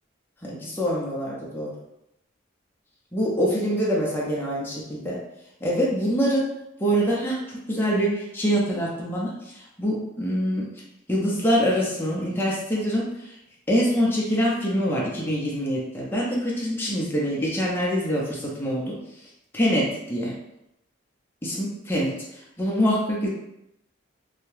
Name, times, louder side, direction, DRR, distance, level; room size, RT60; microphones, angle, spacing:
voice 1, 0.4-1.7 3.1-5.2 5.6-6.5 6.8-10.7 11.1-13.4 13.7-19.0 19.5-20.3 21.4-22.1 22.6-23.3, equal, 10° left, -5 dB, 0.6 m, -25 dB
2.7 x 2.2 x 3.2 m, 0.84 s
head